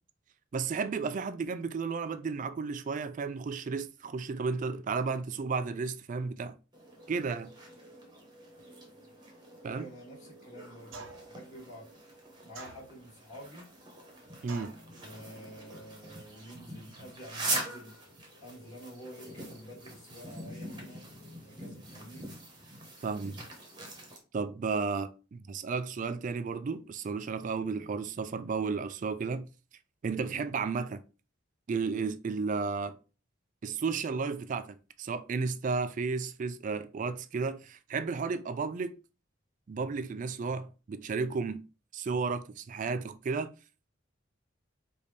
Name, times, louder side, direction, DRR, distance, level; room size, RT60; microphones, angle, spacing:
voice 1, 0.5-6.6 7.1-7.5 9.6-9.9 14.4-14.7 23.0-23.4 24.3-29.5 30.0-31.0 31.7-33.0 33.6-39.0 39.7-41.6 41.9-43.5, right 4 dB, 40° right, 0.3 m, -33 dB
sound 1, 6.7-24.2, right 2 dB, 25° right, 1.1 m, -43 dB
voice 2, 9.7-11.9 12.4-13.7 14.9-18.0 18.4-21.1 21.4-22.3 30.3-30.5, equal, 40° left, 1.9 m, -49 dB
sound 2, 10.9-11.4 12.5-13.2 14.5-14.9, right 3 dB, 80° right, 0.7 m, -46 dB
5.1 x 2.7 x 3.2 m
head